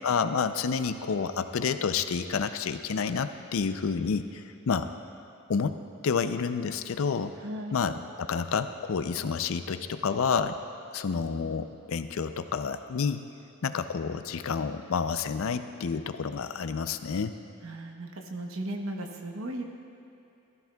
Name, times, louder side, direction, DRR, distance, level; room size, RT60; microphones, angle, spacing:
voice 1, 0.0-4.9 5.5-5.8 6.0-7.3 7.7-10.6 10.9-13.2 13.6-17.3, left 5 dB, 70° left, 10 dB, 0.4 m, -29 dB
voice 2, 7.4-7.8 17.6-19.6, right 1 dB, 70° right, 3 dB, 0.9 m, -36 dB
15.5 x 13.0 x 2.3 m, 2.8 s
head